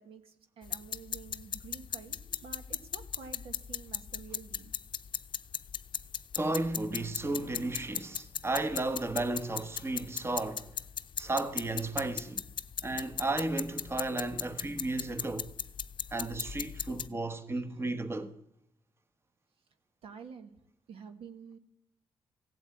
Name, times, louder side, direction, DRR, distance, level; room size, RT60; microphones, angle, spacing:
voice 1, 0.0-4.7 17.5-17.7 20.0-20.5 20.9-21.6, right 6 dB, 80° right, 1.6 m, -49 dB
sound 1, 0.6-17.1, left 8 dB, 55° left, 0.6 m, -38 dB
voice 2, 6.4-10.7 11.2-12.4 12.8-15.5 16.1-18.3, right 2 dB, 25° right, 1.2 m, -34 dB
16.0 x 8.3 x 8.5 m
cardioid pair, 80°, 10 cm